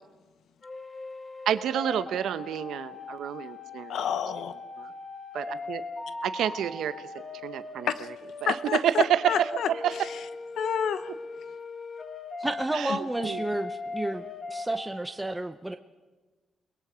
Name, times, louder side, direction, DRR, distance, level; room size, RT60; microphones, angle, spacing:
sound 1, 0.6-15.0, left 3 dB, 30° left, 1.7 m, -40 dB
voice 1, 1.4-4.0 4.8-4.9 5.3-5.8 6.2-7.1 7.4-7.9 8.4-10.1 12.7-13.5, right 10 dB, 85° right, 12 dB, 1.0 m, -29 dB
voice 2, 3.9-4.5 7.9-8.1 8.5-9.7 10.5-11.1 12.9-13.0, left 8 dB, 75° left, 12 dB, 1.2 m, -29 dB
voice 3, 12.4-15.8, right 2 dB, 10° right, 7 dB, 0.7 m, -31 dB
29.0 x 20.5 x 5.1 m, 1.2 s
cardioid pair, 120°, 0 cm